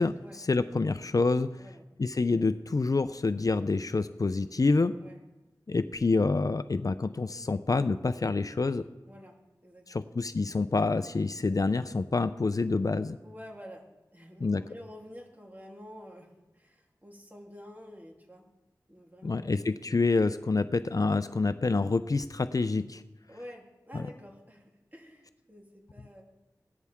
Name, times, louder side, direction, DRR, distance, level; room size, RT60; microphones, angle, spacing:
voice 1, 0.0-1.5 2.0-4.9 5.7-8.8 9.9-13.2 14.4-14.6 19.2-23.0 23.9-24.0, left 3 dB, 50° left, 12 dB, 0.5 m, -27 dB
voice 2, 9.0-9.4 9.6-10.1 13.2-13.8 14.1-18.4 18.9-19.5 23.3-26.2, equal, 25° right, -1 dB, 3.2 m, -49 dB
17.0 x 13.0 x 3.6 m, 1.0 s
cardioid pair, 45°, 8 cm